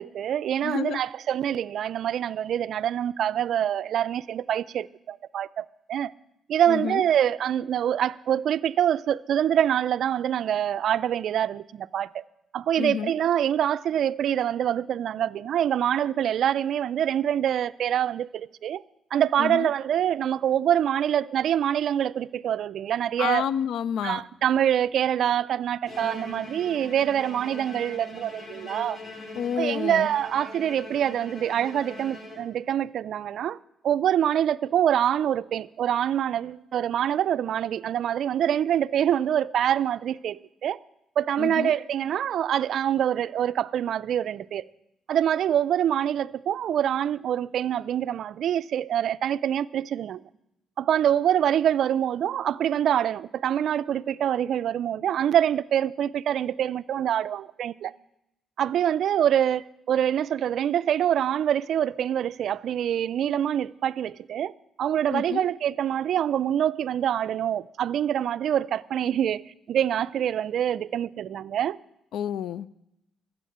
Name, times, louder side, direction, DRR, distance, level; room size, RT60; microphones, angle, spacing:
voice 1, 0.0-6.1 6.5-12.2 12.5-18.8 19.1-23.5 24.0-29.0 29.6-33.6 33.8-40.8 41.2-44.6 45.1-50.2 50.8-57.9 58.6-64.5 64.8-69.4 69.7-71.8, right 10 dB, 70° right, 0.4 m, -25 dB
voice 2, 0.6-1.0 6.7-7.0 12.8-13.1 19.4-19.7 23.2-24.2 29.4-30.1 41.4-41.7 65.1-65.5 72.1-72.7, left 9 dB, 75° left, 0.4 m, -29 dB
Bowed string instrument, 25.9-32.8, left 2 dB, 40° left, 2.9 m, -42 dB
13.0 x 8.0 x 8.5 m
cardioid pair, 90°, 0 cm